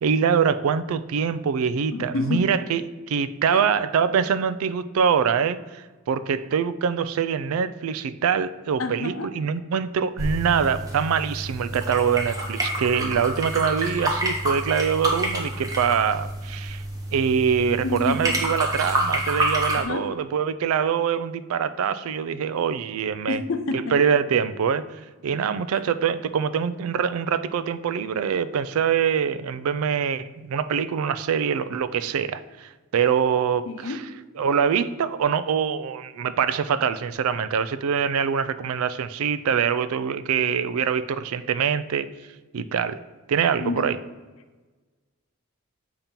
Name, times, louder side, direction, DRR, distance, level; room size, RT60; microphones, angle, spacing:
voice 1, 0.0-2.8 3.1-16.8 17.1-23.4 23.7-24.8 25.2-34.0 34.4-42.1 42.5-43.0 43.3-44.0, right 7 dB, 80° right, 14 dB, 0.3 m, -24 dB
voice 2, 1.9-2.5 3.5-3.6 8.8-9.3 17.8-18.3 19.8-20.1 23.3-24.0 33.7-34.0 43.6-43.9, left 3 dB, 65° left, 8 dB, 0.6 m, -28 dB
sound 1, 10.2-19.8, right 1 dB, 15° right, 0.8 m, -28 dB
7.2 x 2.9 x 5.2 m, 1.3 s
head